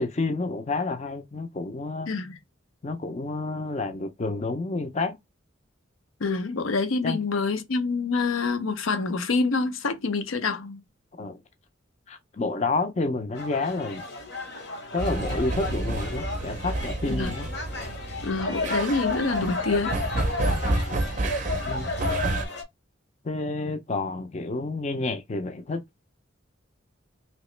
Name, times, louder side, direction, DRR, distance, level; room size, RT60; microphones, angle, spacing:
voice 1, 0.0-2.1 2.8-5.2 7.0-7.2 11.2-11.4 12.1-14.0 14.9-17.5 21.6-21.9 23.2-25.8, left 3 dB, 35° left, 0.5 m, -29 dB
voice 2, 2.1-2.4 6.2-10.8 17.1-17.3 18.2-20.0, left 4 dB, 80° left, 0.6 m, -26 dB
sound 1, 13.4-22.6, left 3 dB, 55° left, 0.9 m, -33 dB
sound 2, 15.0-22.4, right 2 dB, 40° right, 0.5 m, -30 dB
3.0 x 2.9 x 3.1 m
head